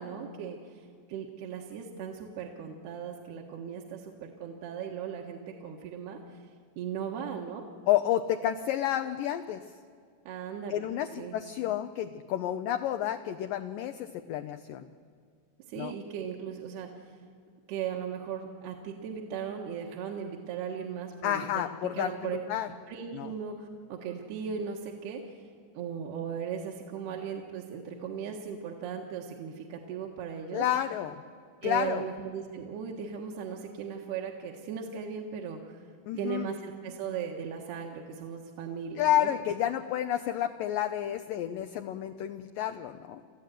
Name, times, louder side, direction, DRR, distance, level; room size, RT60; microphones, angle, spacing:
voice 1, 0.0-6.4 6.8-7.7 10.3-10.8 11.2-11.4 15.7-17.1 17.7-21.6 21.9-22.4 22.9-25.5 25.8-30.7 31.6-35.8 36.2-39.3, right 7 dB, 75° right, 0 dB, 3.3 m, -37 dB
voice 2, 7.9-9.6 10.7-14.9 15.8-15.9 21.2-22.7 23.1-23.3 30.5-31.2 31.6-32.1 36.1-36.5 39.0-43.2, left 11 dB, 90° left, 8 dB, 1.9 m, -30 dB
29.5 x 14.5 x 9.3 m, 2.2 s
omnidirectional pair, 4.9 m